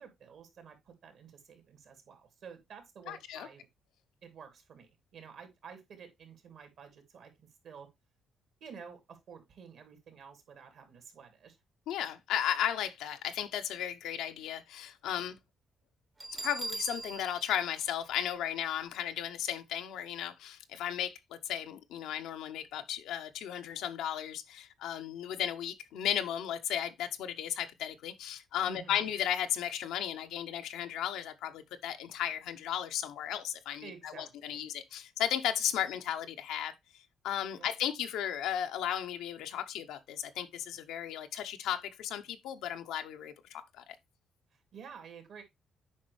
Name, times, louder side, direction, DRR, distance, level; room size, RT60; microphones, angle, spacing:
voice 1, 0.0-3.7 4.2-7.9 8.6-11.6 28.7-29.0 33.8-34.6 37.5-37.7 44.5-45.4, right 6 dB, 70° right, 2.8 m, -51 dB
voice 2, 3.1-3.5 11.9-15.4 16.3-44.0, left 10 dB, 90° left, 0.8 m, -35 dB
Bell, 16.2-18.9, right 2 dB, 25° right, 0.8 m, -42 dB
8.4 x 5.3 x 3.2 m
cardioid pair, 90°, 0 cm